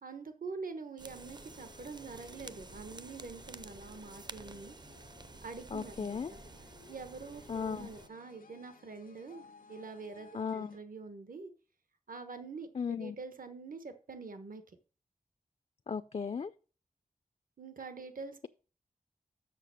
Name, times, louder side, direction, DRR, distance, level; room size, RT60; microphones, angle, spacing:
voice 1, 0.0-4.7 5.4-6.4 6.9-11.5 12.1-14.6 17.6-18.5, right 4 dB, 80° right, 8 dB, 1.1 m, -45 dB
sound 1, 1.0-8.1, right 3 dB, 30° right, 0.5 m, -51 dB
sound 2, 1.1-10.8, left 5 dB, 90° left, 0.7 m, -58 dB
voice 2, 5.7-6.3 7.5-7.9 10.3-10.8 12.7-13.2 15.9-16.5, left 6 dB, 45° left, 12 dB, 0.4 m, -36 dB
6.7 x 6.2 x 6.2 m, 0.38 s
wide cardioid pair, 60°, 14 cm